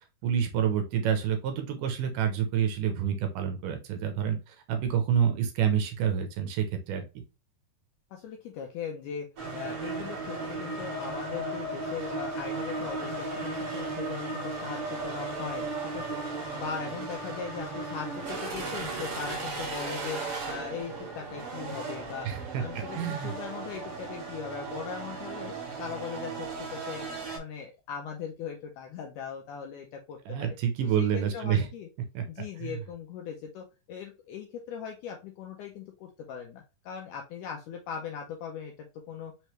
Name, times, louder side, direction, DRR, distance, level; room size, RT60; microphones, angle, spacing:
voice 1, 0.2-7.0 22.3-23.3 30.3-31.7 32.2-32.3 32.6-32.8, right 8 dB, 75° right, 6 dB, 2.0 m, -28 dB
voice 2, 8.1-16.2 16.5-20.2 20.5-27.1 27.3-30.6 31.0-31.9 32.3-39.3, left 7 dB, 80° left, 2 dB, 1.8 m, -39 dB
sound 1, 9.4-27.4, right 3 dB, 50° right, 1.8 m, -36 dB
5.6 x 3.1 x 3.0 m, 0.28 s
omnidirectional pair, 4.3 m